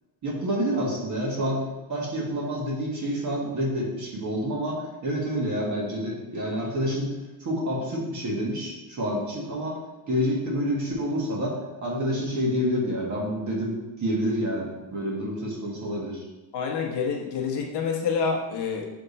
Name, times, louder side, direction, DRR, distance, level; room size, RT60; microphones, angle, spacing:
voice 1, 0.2-1.6 1.9-7.1 7.4-9.8 10.1-16.3, equal, 40° right, -3 dB, 1.4 m, -28 dB
voice 2, 16.5-18.9, left 5 dB, 60° left, 0 dB, 1.0 m, -27 dB
6.6 x 3.4 x 4.1 m, 1.1 s
cardioid pair, 160°, 47 cm